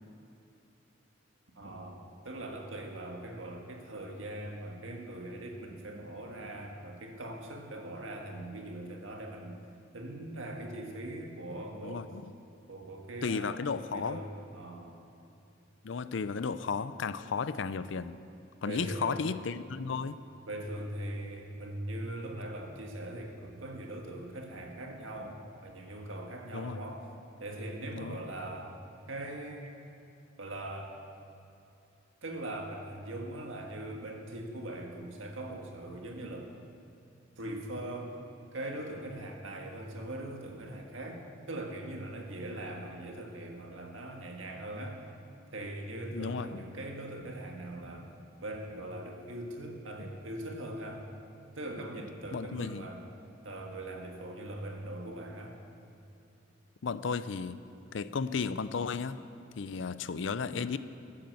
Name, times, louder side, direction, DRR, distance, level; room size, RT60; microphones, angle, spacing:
voice 1, 1.6-9.6 9.9-12.1 12.7-13.6 13.9-15.0 18.7-19.2 20.5-27.1 27.4-28.8 29.1-29.8 30.4-31.0 32.2-36.5 37.4-38.2 38.5-45.0 45.5-48.1 48.4-51.1 51.5-53.0 53.4-55.6, right 1 dB, 90° right, 2 dB, 1.7 m, -41 dB
voice 2, 11.8-12.3 13.2-14.2 15.8-18.2 18.6-20.2 26.5-26.8 27.9-28.2 46.1-46.6 52.3-52.8 56.8-57.6 57.9-59.2 59.6-60.8, left 5 dB, 70° left, 14 dB, 0.5 m, -34 dB
13.5 x 8.8 x 7.8 m, 2.7 s
head